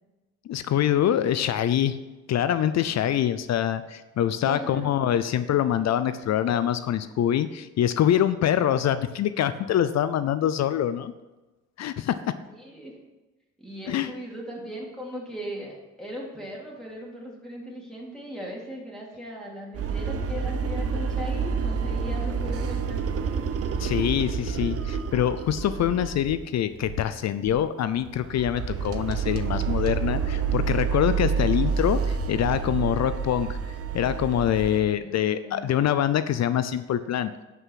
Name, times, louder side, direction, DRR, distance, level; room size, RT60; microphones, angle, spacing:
voice 1, 0.5-2.0 2.3-11.1 11.8-12.2 13.9-14.1 23.8-37.3, left 10 dB, 60° left, 13 dB, 0.6 m, -25 dB
voice 2, 4.4-5.0 12.5-13.0 13.6-23.2 35.0-35.7, equal, ahead, -4 dB, 3.3 m, -38 dB
sound 1, 19.7-26.5 26.8-27.1 27.5-27.6 28.0-34.8, right 6 dB, 50° right, 0.9 m, -28 dB
11.0 x 5.7 x 5.8 m, 1.1 s
cardioid pair, 90°, 30 cm